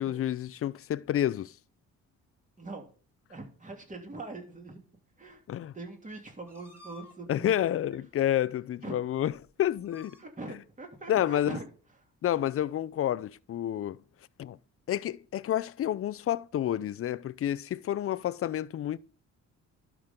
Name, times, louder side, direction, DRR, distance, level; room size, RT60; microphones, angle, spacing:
voice 1, 0.0-1.5 5.5-5.7 7.3-9.3 9.6-10.2 11.1-11.6 12.2-14.0 14.4-14.6 14.9-19.0, left 11 dB, 50° left, 0.5 m, -29 dB
voice 2, 3.3-4.8 5.2-5.4 5.7-7.6 8.8-9.0 10.2-11.6, right 3 dB, 25° right, 3.1 m, -42 dB
sound 1, 6.5-7.1 7.9-8.0 8.9-9.0 9.2-9.5 9.8-10.2, left 2 dB, 10° right, 4.5 m, -53 dB
12.0 x 6.1 x 3.8 m
cardioid pair, 90°, 30 cm